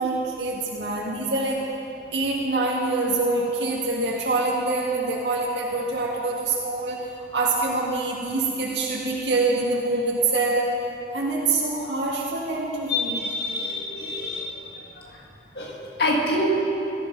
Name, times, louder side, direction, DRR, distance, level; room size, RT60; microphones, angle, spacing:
voice 1, 0.0-1.6 2.1-7.0 7.3-10.7 11.1-13.2, right 3 dB, 75° right, -4 dB, 1.8 m, -25 dB
voice 2, 12.9-14.6 15.5-16.5, left 1 dB, 60° left, -2 dB, 2.2 m, -26 dB
17.5 x 13.0 x 5.2 m, 3.0 s
head